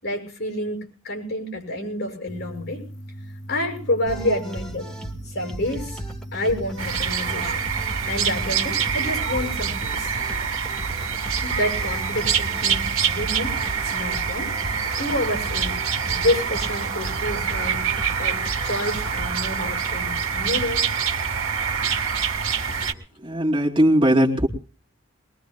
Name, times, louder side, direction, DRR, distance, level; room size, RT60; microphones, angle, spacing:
voice 1, 0.0-2.8 3.5-4.9 5.2-6.0 6.3-10.2 11.4-13.6 13.9-14.5 15.0-15.8 16.1-17.9 18.2-18.4 18.6-20.8 22.7-22.8, left 1 dB, 50° left, 3 dB, 6.1 m, -28 dB
sound 1, 2.3-9.5, equal, 65° left, 1.0 m, -38 dB
sound 2, 4.1-19.4, right 1 dB, 5° left, 1.5 m, -37 dB
sound 3, 6.8-22.9, right 6 dB, 80° right, 1.6 m, -26 dB
voice 2, 23.2-24.5, equal, 25° right, -2 dB, 2.4 m, -19 dB
22.0 x 21.5 x 2.2 m, 0.37 s
head